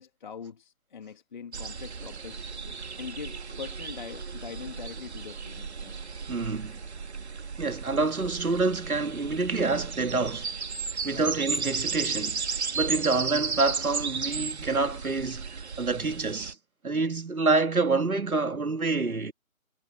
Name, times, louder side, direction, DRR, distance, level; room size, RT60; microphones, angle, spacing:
voice 1, 0.0-5.9 9.2-9.3 11.1-11.3 12.0-12.2 12.8-13.1, left 6 dB, 35° left, 1.6 m, -43 dB
sound 1, 1.5-16.5, right 5 dB, 50° right, 2.2 m, -35 dB
voice 2, 6.3-6.8 7.6-10.5 11.0-12.4 12.7-16.6 16.8-19.3, right 3 dB, 85° right, 2.2 m, -27 dB
figure-of-eight pair, 160°, 42 cm